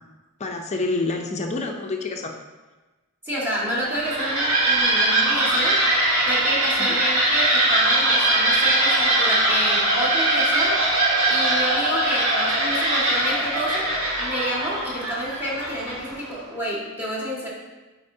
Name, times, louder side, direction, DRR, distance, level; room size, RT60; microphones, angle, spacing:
voice 1, 0.4-2.3 6.8-7.0, left 3 dB, 30° left, 3 dB, 0.5 m, -27 dB
voice 2, 3.2-5.8 6.3-10.8 11.3-13.9 14.2-17.5, equal, 10° right, -5 dB, 1.6 m, -29 dB
sound 1, 3.7-16.2, right 1 dB, 70° right, 1.8 m, -21 dB
8.8 x 4.6 x 2.7 m, 1.2 s
head